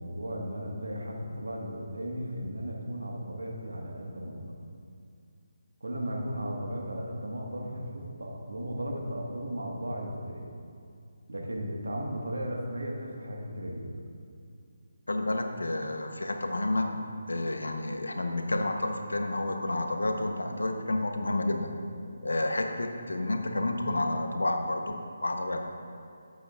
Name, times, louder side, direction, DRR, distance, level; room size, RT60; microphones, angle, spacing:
voice 1, 0.0-4.5 5.8-10.4 11.3-14.0, equal, 85° right, -1 dB, 1.4 m, -35 dB
voice 2, 15.1-16.9 17.3-21.7 22.2-25.7, left 2 dB, 85° left, 4 dB, 0.8 m, -30 dB
11.0 x 8.0 x 2.4 m, 2.3 s
figure-of-eight pair, 155°, 0 cm